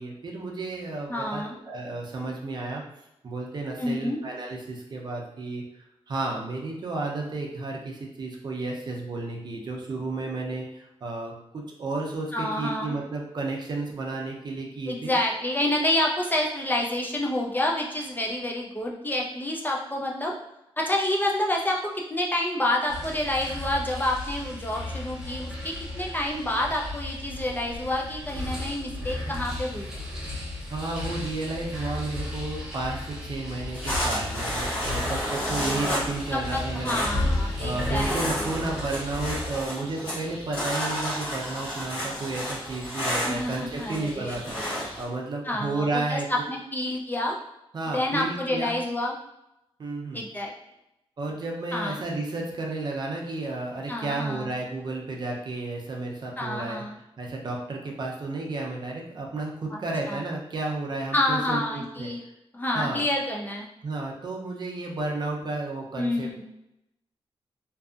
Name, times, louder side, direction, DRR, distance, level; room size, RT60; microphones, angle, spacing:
voice 1, 0.0-2.8 3.2-5.6 6.1-15.1 30.7-37.0 37.6-46.3 47.7-48.8 49.8-50.2 51.2-56.8 57.2-62.1 62.7-63.1 63.8-66.4, right 2 dB, 45° right, -1 dB, 0.5 m, -32 dB
voice 2, 1.1-1.6 3.8-4.2 12.3-13.0 14.9-20.4 20.8-30.0 35.4-36.0 36.3-38.5 43.2-44.4 45.4-47.4 47.9-49.2 50.1-50.5 51.7-52.0 53.9-54.5 56.4-56.9 59.7-59.8 60.1-60.2 61.1-62.2 62.5-63.7 66.0-66.4, left 1 dB, 20° left, -1 dB, 0.3 m, -28 dB
sound 1, 22.9-39.7, left 1 dB, 5° right, 0.7 m, -34 dB
sound 2, 33.7-45.0, equal, 50° left, 1.1 m, -32 dB
2.6 x 2.4 x 2.3 m, 0.86 s
wide cardioid pair, 145°, 10 cm